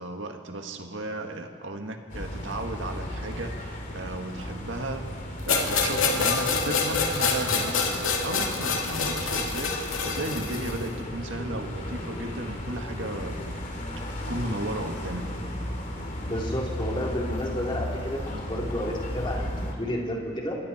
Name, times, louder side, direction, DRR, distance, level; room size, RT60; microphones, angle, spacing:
voice 1, 0.0-5.1 5.4-13.5 14.0-15.3, right 2 dB, 65° right, 4 dB, 1.9 m, -35 dB
sound 1, 2.1-19.7, left 1 dB, 40° left, 2.8 m, -35 dB
sound 2, 5.5-10.8, left 4 dB, 80° left, 2.4 m, -26 dB
voice 2, 16.2-20.6, equal, 25° left, -2 dB, 3.4 m, -31 dB
28.0 x 22.0 x 4.4 m, 2.2 s
head